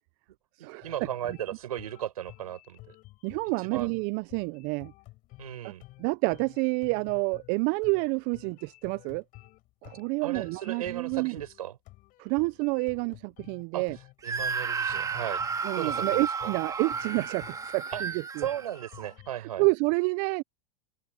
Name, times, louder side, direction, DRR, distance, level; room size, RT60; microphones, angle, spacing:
voice 1, 0.6-2.8 3.6-3.9 5.4-5.8 10.2-11.8 13.7-13.9 14.2-15.4 15.8-16.5 17.9-18.0 18.4-19.6, right 11 dB, 85° right, 5.7 m, -36 dB
sound 1, 0.8-19.4, left 19 dB, 45° left, 7.3 m, -52 dB
voice 2, 3.2-4.9 5.6-5.7 6.0-9.2 9.8-11.4 12.2-14.0 15.6-18.1 18.4-18.5 19.4-20.4, right 30 dB, 50° right, 0.4 m, -29 dB
Screaming, 14.2-19.1, right 5 dB, 20° right, 2.1 m, -33 dB
open air
hypercardioid pair, 115°, 19 cm